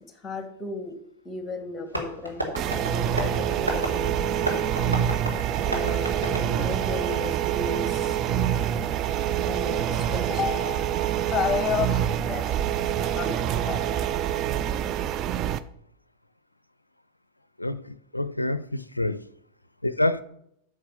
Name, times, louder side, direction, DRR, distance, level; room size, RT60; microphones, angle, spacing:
voice 1, 0.2-0.9 1.2-4.9 5.6-8.2 9.5-14.0, left 5 dB, 15° left, 1.8 m, -33 dB
Tap, 1.9-7.4, right 1 dB, 90° right, 2.1 m, -34 dB
sound 1, 2.6-15.6, right 10 dB, 35° right, 0.5 m, -26 dB
voice 2, 17.6-19.2 19.8-20.2, left 1 dB, 85° left, 0.4 m, -27 dB
8.8 x 6.4 x 6.8 m
figure-of-eight pair, 90°, 0 cm